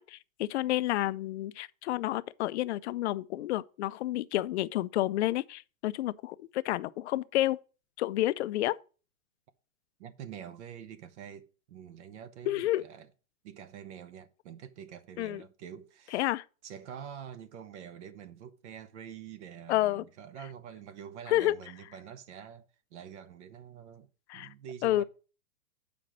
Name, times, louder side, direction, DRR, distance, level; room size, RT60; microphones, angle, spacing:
voice 1, 0.0-7.6 8.0-8.8 12.5-12.8 15.2-15.4 16.1-16.4 19.7-20.0 21.3-21.5 24.3-24.5 24.8-25.0, left 15 dB, 50° left, 0.5 m, -30 dB
voice 2, 10.0-13.1 13.4-16.3 16.6-24.1 24.3-25.0, right 8 dB, 50° right, 0.9 m, -46 dB
7.4 x 5.1 x 5.9 m
hypercardioid pair, 150°, 43 cm